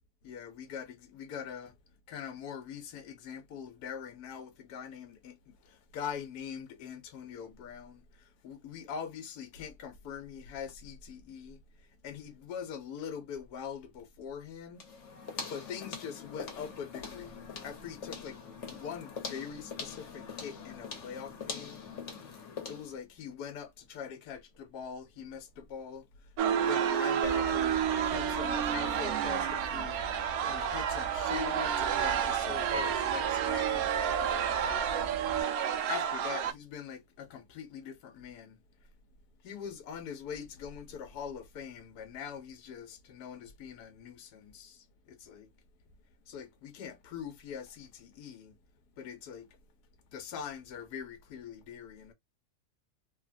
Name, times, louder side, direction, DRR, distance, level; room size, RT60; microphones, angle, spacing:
voice 1, 0.2-1.8 2.1-14.8 15.2-21.8 22.6-35.2 35.6-38.9 39.4-45.5 46.3-48.5 49.0-49.6 50.1-52.1, left 7 dB, 85° left, 1.2 m, -43 dB
sound 1, 14.8-23.0, left 5 dB, 55° left, 1.2 m, -43 dB
sound 2, 26.4-36.5, right 8 dB, 75° right, 1.0 m, -30 dB
sound 3, 27.2-35.4, right 3 dB, 15° left, 0.7 m, -46 dB
3.1 x 2.2 x 2.5 m
omnidirectional pair, 1.7 m